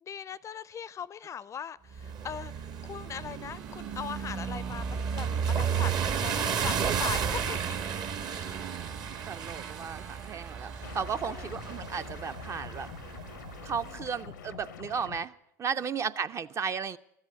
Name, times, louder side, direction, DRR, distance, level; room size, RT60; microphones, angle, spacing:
voice 1, 0.0-2.5 2.8-7.8 10.0-10.3 11.2-11.5 15.7-15.8, left 8 dB, 30° left, 21 dB, 0.4 m, -40 dB
sound 1, 1.9-14.1, right 7 dB, 45° right, 1.1 m, -33 dB
sound 2, 2.8-12.5, right 5 dB, 75° right, 2.5 m, -51 dB
voice 2, 9.3-12.9 13.6-15.3 15.6-17.0, right 6 dB, 30° right, 12 dB, 0.5 m, -34 dB
sound 3, 10.8-15.2, left 8 dB, 85° left, 0.7 m, -45 dB
13.0 x 8.1 x 9.6 m, 0.82 s
hypercardioid pair, 75°, 10 cm